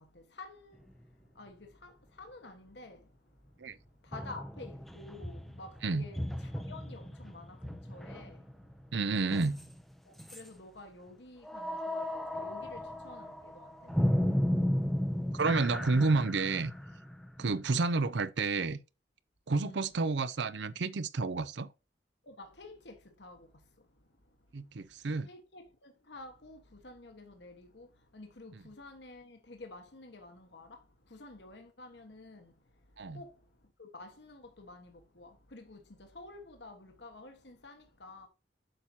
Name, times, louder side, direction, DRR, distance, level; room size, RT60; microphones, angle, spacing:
voice 1, 0.4-0.8 1.4-1.6 1.8-1.9 2.2-3.0 4.1-6.2 6.7-8.4 10.3-13.7 17.4-17.6 19.6-19.8 22.3-22.9 23.2-23.4 25.3-26.6 26.8-27.9 28.1-30.7 31.1-32.4 33.1-33.3 33.8-34.9 35.2-35.8 36.1-38.3, left 2 dB, 70° left, 1.3 m, -50 dB
sound 1, 0.8-0.9 4.1-9.9 10.2-10.5 11.4-18.1, equal, ahead, 0.5 m, -35 dB
voice 2, 8.9-9.6 15.3-16.7 17.4-18.8 19.5-21.7 24.5-25.3 28.5-28.6 33.0-33.2, right 3 dB, 70° right, 0.6 m, -30 dB
7.9 x 5.8 x 2.8 m
head